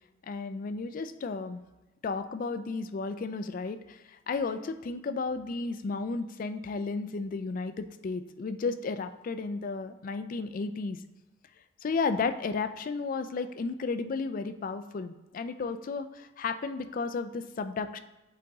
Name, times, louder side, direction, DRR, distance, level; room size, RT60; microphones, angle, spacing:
voice 1, 0.2-1.6 2.0-11.0 11.8-18.0, left 4 dB, 45° left, 10 dB, 0.3 m, -33 dB
7.7 x 3.8 x 3.5 m, 1.0 s
head